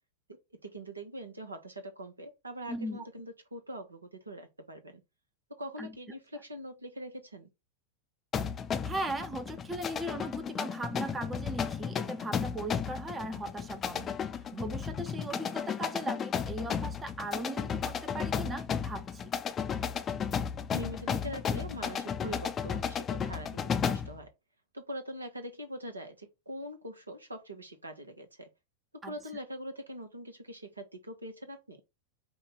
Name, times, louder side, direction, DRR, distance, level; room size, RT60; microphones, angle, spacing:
voice 1, 0.3-5.0 5.5-7.5 20.7-24.3 24.7-28.5 29.1-31.8, right 1 dB, 80° right, 1.0 m, -43 dB
voice 2, 2.7-3.0 5.8-5.9 8.8-19.3 29.0-29.1, right 1 dB, 15° right, 0.7 m, -38 dB
sound 1, 8.3-24.2, left 7 dB, 25° left, 0.5 m, -34 dB
5.1 x 2.4 x 4.0 m
figure-of-eight pair, 90°, 0 cm